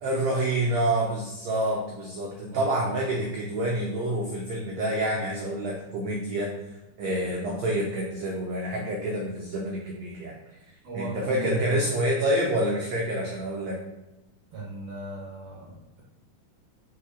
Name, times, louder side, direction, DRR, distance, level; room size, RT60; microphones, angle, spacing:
voice 1, 0.0-6.5 7.0-10.3 10.9-13.8, right 1 dB, 90° right, -1 dB, 1.5 m, -27 dB
voice 2, 2.5-3.0 10.8-12.0 14.5-16.0, right 2 dB, 65° right, -5 dB, 1.7 m, -36 dB
5.4 x 4.7 x 4.3 m, 0.96 s
omnidirectional pair, 4.2 m